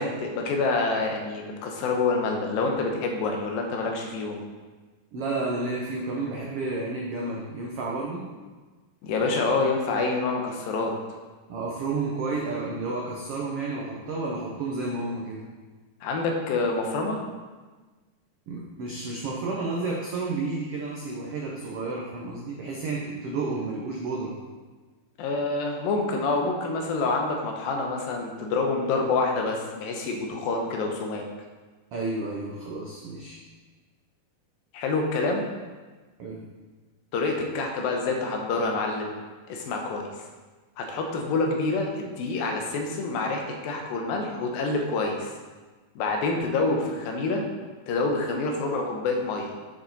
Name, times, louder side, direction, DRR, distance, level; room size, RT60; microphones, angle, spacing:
voice 1, 0.0-4.4 9.0-10.9 16.0-17.2 25.2-31.2 34.7-35.4 37.1-39.1 39.5-40.1 40.8-45.3 46.0-47.4 47.9-49.5, left 3 dB, 85° left, 2 dB, 2.8 m, -27 dB
voice 2, 5.1-8.2 11.5-15.4 18.5-24.4 31.9-33.4 36.2-36.4, right 3 dB, 90° right, -2 dB, 1.3 m, -31 dB
8.8 x 6.6 x 4.1 m, 1.3 s
omnidirectional pair, 4.1 m